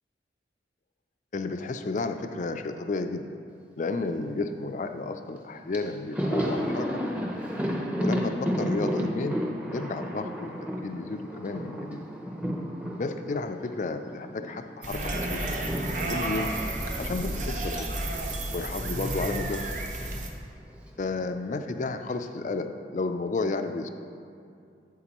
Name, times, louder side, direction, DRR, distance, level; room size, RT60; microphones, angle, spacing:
voice 1, 1.3-3.4 3.8-7.0 8.0-9.4 9.7-10.5 10.8-12.0 13.0-15.4 16.1-16.6 17.0-17.9 18.5-19.6 21.0-23.9, left 3 dB, 45° left, 8 dB, 0.4 m, -32 dB
Thunder, 5.4-5.5 5.7-14.5 14.8-19.1 19.4-19.5 20.7-21.4, equal, 5° right, 0.6 m, -33 dB
sound 1, 14.8-20.3, right 1 dB, 45° right, 0.7 m, -31 dB
8.3 x 8.2 x 3.0 m, 2.4 s
head